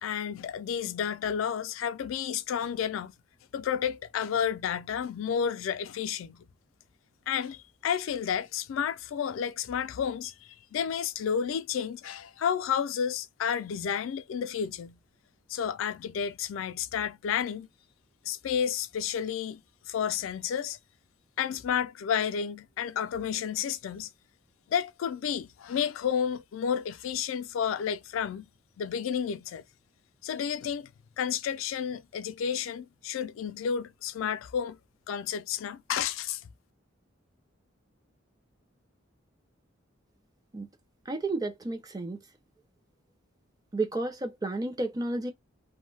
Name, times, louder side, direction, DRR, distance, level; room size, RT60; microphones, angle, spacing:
voice 1, 0.0-3.1 3.5-6.4 7.3-15.0 15.5-17.7 18.3-19.6 19.9-20.8 21.4-24.1 24.7-28.5 28.8-29.6 30.2-30.9 31.2-34.8 35.1-36.4, left 8 dB, 80° left, 0.3 m, -31 dB
voice 2, 41.1-42.2 43.7-45.3, right 2 dB, 20° right, 0.5 m, -31 dB
2.6 x 2.1 x 3.1 m
head